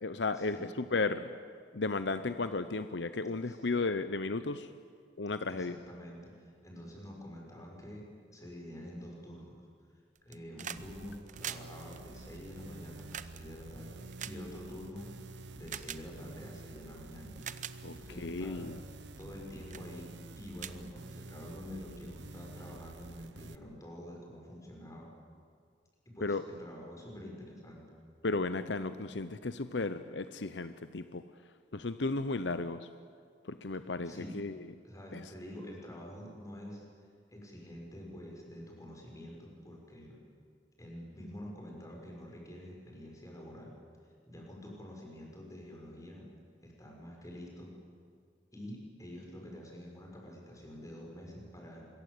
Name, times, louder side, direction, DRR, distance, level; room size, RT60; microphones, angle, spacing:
voice 1, 0.0-1.3 1.7-4.7 5.2-5.8 17.8-18.8 26.2-26.4 28.2-31.2 31.7-32.9 33.4-34.6 35.1-35.3, left 3 dB, 80° left, 11 dB, 0.9 m, -34 dB
voice 2, 5.5-9.5 10.2-15.1 15.5-17.4 17.9-18.7 19.2-25.1 26.1-27.8 34.0-34.4 34.8-36.8 37.3-40.2 40.8-43.8 44.3-46.2 46.6-47.7 48.5-51.8, left 1 dB, 20° left, -1 dB, 6.6 m, -47 dB
sound 1, 10.1-10.9 11.1-15.0 15.7-16.0 16.8-16.9 17.3-17.8 18.4-18.6 19.1-19.4 19.7-19.9 20.2-20.3 20.6-21.5 22.7-22.8, right 9 dB, 45° right, 0.8 m, -43 dB
sound 2, 10.8-23.6, right 2 dB, 80° right, 1.0 m, -49 dB
25.0 x 22.0 x 8.5 m, 2.1 s
head